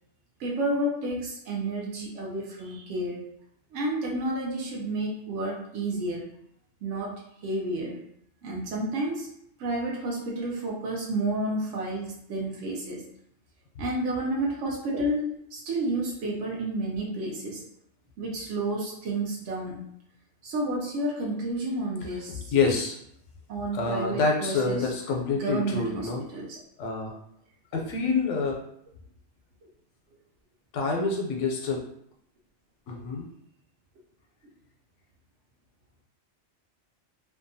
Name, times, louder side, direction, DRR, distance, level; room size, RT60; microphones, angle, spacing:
voice 1, 0.4-3.3 3.7-6.3 6.8-8.0 8.4-9.3 9.6-13.0 13.8-17.6 18.2-19.9 20.4-22.5 23.5-24.9 25.3-26.6, right 1 dB, 85° right, -2 dB, 0.9 m, -31 dB
voice 2, 22.5-23.0 23.7-26.2 26.8-27.1 27.7-28.6 30.7-31.8 32.9-33.3, left 4 dB, 85° left, 1 dB, 1.0 m, -27 dB
2.7 x 2.2 x 2.6 m, 0.72 s
omnidirectional pair, 1.2 m